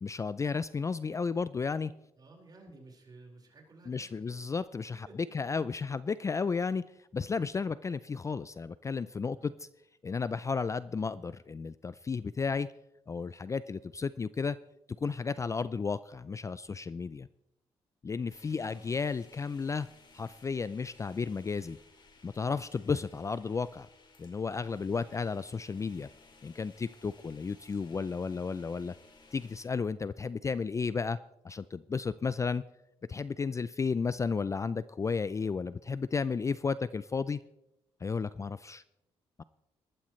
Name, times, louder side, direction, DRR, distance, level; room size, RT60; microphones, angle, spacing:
voice 1, 0.0-1.9 3.9-5.1 5.3-6.8 7.1-9.7 10.0-12.7 13.1-14.6 15.0-17.3 18.0-19.9 20.1-21.8 22.2-23.9 24.2-26.1 26.4-28.9 29.3-31.2 31.4-32.6 33.1-37.4 38.0-38.8 39.4-39.5, left 5 dB, 30° left, 16 dB, 0.4 m, -33 dB
voice 2, 2.1-4.4 5.0-5.3 9.4-9.6 13.7-13.9 18.5-19.0 24.9-25.4 38.4-38.6, right 3 dB, 40° right, 0 dB, 4.8 m, -56 dB
sound 1, 18.3-29.7, left 3 dB, 45° left, 2.5 m, -59 dB
19.5 x 13.0 x 3.2 m, 0.85 s
cardioid pair, 80°, 11 cm